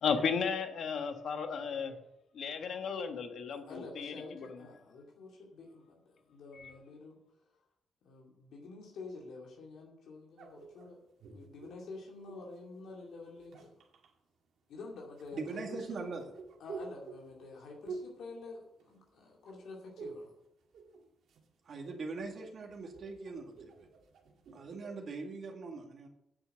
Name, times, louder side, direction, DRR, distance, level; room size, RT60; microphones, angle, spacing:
voice 1, 0.0-2.0 2.3-4.5 6.6-6.7, left 6 dB, 70° left, 6 dB, 1.4 m, -34 dB
voice 2, 3.6-7.2 8.0-11.0 11.3-13.7 14.7-16.1 16.6-20.3, left 3 dB, 90° left, -2 dB, 2.4 m, -48 dB
sound 1, 10.4-12.6 13.3-14.1 15.2-19.2 19.5-20.3 20.6-21.5 21.8-25.1, right 4 dB, 80° right, 2.1 m, -49 dB
voice 3, 15.3-16.2 21.7-23.9 24.5-26.1, right 4 dB, 55° right, 1 dB, 2.1 m, -41 dB
9.0 x 6.8 x 7.9 m, 0.80 s
cardioid pair, 115°, 0 cm